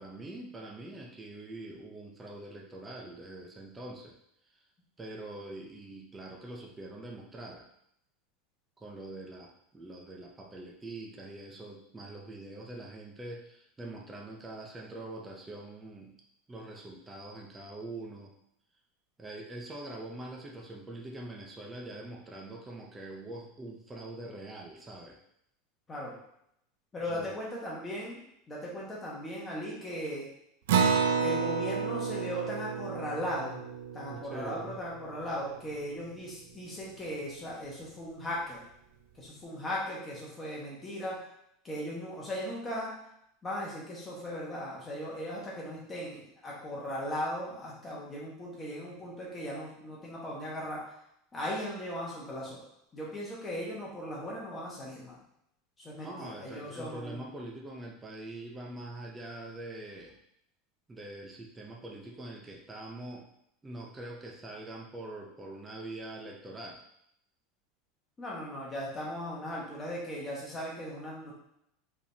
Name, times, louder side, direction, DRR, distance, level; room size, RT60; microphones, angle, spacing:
voice 1, 0.0-4.2 4.5-4.6 5.0-7.7 8.8-16.2 16.5-18.4 19.2-25.2 27.1-27.3 34.1-34.8 56.0-60.2 60.9-63.3 63.6-66.8, right 2 dB, 10° right, -1 dB, 0.5 m, -44 dB
voice 2, 26.9-28.2 28.5-30.2 31.2-33.6 33.9-38.6 39.1-41.2 41.6-42.9 43.4-50.8 51.3-52.6 52.9-55.2 55.8-57.2 68.2-71.3, equal, 15° left, -5 dB, 1.2 m, -38 dB
Acoustic guitar, 30.7-35.6, right 6 dB, 80° right, 0.4 m, -31 dB
4.9 x 3.5 x 2.7 m, 0.75 s
supercardioid pair, 175°, 0 cm